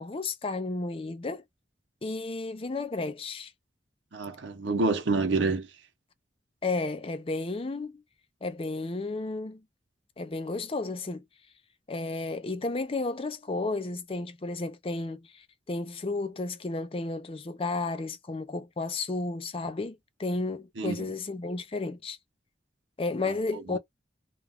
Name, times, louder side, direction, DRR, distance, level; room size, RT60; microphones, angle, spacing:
voice 1, 0.0-1.4 2.0-3.5 6.6-8.0 8.4-9.6 10.2-11.2 11.9-22.2 23.0-23.8, left 3 dB, 30° left, 0.5 m, -32 dB
voice 2, 4.1-5.7 20.8-21.1 23.7-23.8, right 3 dB, 85° right, 0.7 m, -27 dB
2.4 x 2.2 x 3.4 m
head